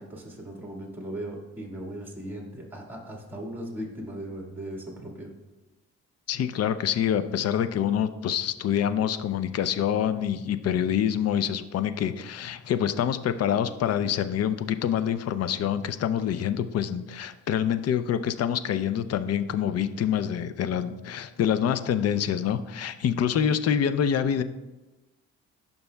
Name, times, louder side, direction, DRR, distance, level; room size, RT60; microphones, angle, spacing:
voice 1, 0.0-5.3, right 1 dB, 5° right, -1 dB, 1.7 m, -38 dB
voice 2, 6.3-24.4, left 9 dB, 55° left, 12 dB, 0.5 m, -26 dB
11.5 x 5.4 x 2.2 m, 1.1 s
cardioid pair, 90°, 30 cm